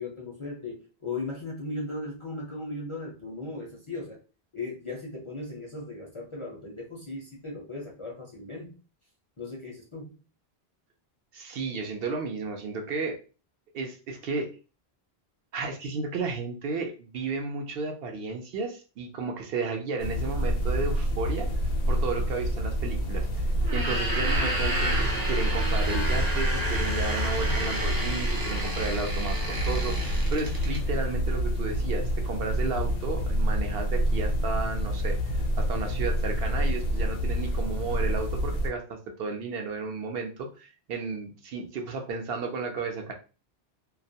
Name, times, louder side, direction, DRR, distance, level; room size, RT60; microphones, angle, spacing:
voice 1, 0.0-4.2 4.5-8.8 9.4-10.1 27.5-27.6, left 2 dB, 40° left, -2 dB, 0.5 m, -37 dB
voice 2, 11.3-13.2 13.7-14.5 15.5-21.5 21.9-23.4 23.7-43.1, right 4 dB, 70° right, 3 dB, 0.7 m, -33 dB
sound 1, 20.0-38.7, equal, 80° left, 0.9 m, -28 dB
sound 2, 23.6-30.8, right 1 dB, 35° right, 0.3 m, -31 dB
2.3 x 2.1 x 2.6 m, 0.34 s
omnidirectional pair, 1.1 m